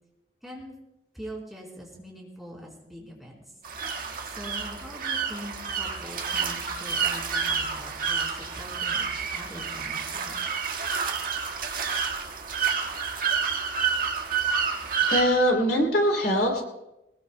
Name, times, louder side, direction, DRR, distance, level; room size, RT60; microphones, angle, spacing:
voice 1, 1.1-3.4 4.4-10.4, equal, ahead, -3 dB, 4.1 m, -42 dB
sound 1, 3.6-15.2, right 6 dB, 50° right, 1.7 m, -29 dB
voice 2, 15.0-16.6, equal, 60° left, 2 dB, 3.1 m, -22 dB
21.5 x 20.5 x 2.2 m, 0.94 s
head